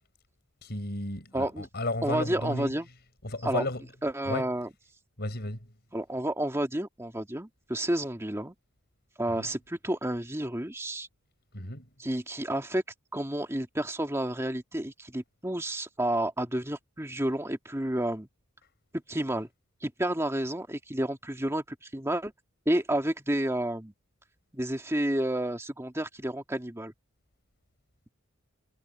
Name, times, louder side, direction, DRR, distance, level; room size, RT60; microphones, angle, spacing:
voice 1, 0.6-2.7 3.2-3.9 4.2-4.5 5.2-5.7 9.3-9.5 11.5-11.9, left 2 dB, 50° left, 5.5 m, -33 dB
voice 2, 1.3-1.7 2.0-2.9 3.4-3.6 4.0-4.7 5.9-8.5 9.2-11.1 12.0-12.8 13.1-18.3 19.1-19.5 19.8-21.6 21.9-22.3 22.7-23.9 24.5-26.9, right 1 dB, 15° right, 2.1 m, -30 dB
head